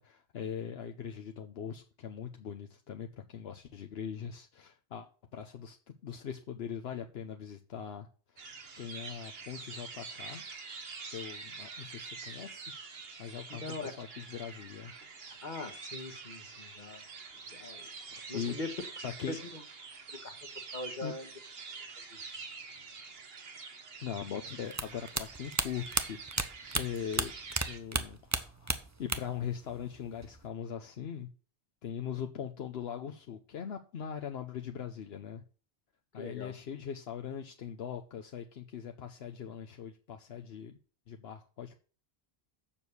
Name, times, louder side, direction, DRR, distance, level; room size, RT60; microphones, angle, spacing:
voice 1, 0.0-5.1 5.3-8.1 8.8-10.4 11.1-12.6 13.2-14.9 17.4-17.8 18.1-18.6 19.0-19.4 21.0-21.1 24.0-26.2 26.7-27.3 27.7-31.3 31.8-35.4 36.1-40.7 41.1-41.8, left 8 dB, 70° left, 5 dB, 1.0 m, -41 dB
sound 1, 8.4-27.8, right 4 dB, 65° right, 1.5 m, -46 dB
voice 2, 13.5-13.9 15.4-17.1 17.5-17.9 18.3-19.6 20.2-20.3 20.7-21.3 22.1-22.2 36.1-36.5, left 3 dB, 45° left, 7 dB, 1.5 m, -41 dB
sound 2, 24.7-27.7 27.9-29.4 29.7-30.5, right 3 dB, 20° right, 0.6 m, -32 dB
7.3 x 6.2 x 7.0 m, 0.38 s
omnidirectional pair, 1.1 m